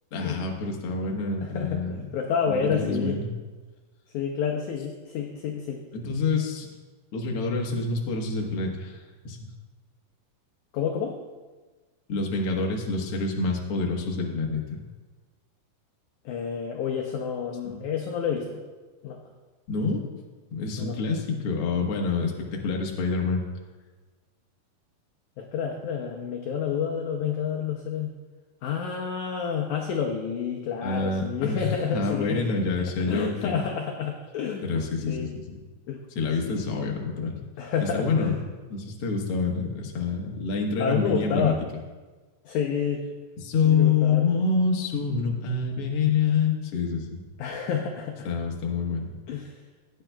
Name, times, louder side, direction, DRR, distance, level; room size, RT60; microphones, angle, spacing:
voice 1, 0.1-2.0 2.5-3.3 5.9-6.7 7.1-9.0 9.2-9.4 12.1-14.8 17.6-17.7 19.7-20.0 20.5-23.5 30.8-33.6 34.6-35.6 36.1-37.3 37.8-38.3 38.7-41.5 43.4-47.2 48.2-49.2, left 4 dB, 60° left, 0 dB, 1.5 m, -27 dB
voice 2, 1.4-3.2 4.1-5.8 10.7-11.2 16.3-18.6 19.0-19.2 20.8-21.0 25.4-28.1 28.6-32.5 32.8-34.8 35.1-35.4 35.9-36.0 36.4-36.9 37.6-38.4 40.8-41.6 42.5-43.1 43.6-44.2 47.4-48.3 49.3-49.6, left 7 dB, 75° left, 1 dB, 1.8 m, -29 dB
16.5 x 9.4 x 2.3 m, 1.3 s
omnidirectional pair, 4.2 m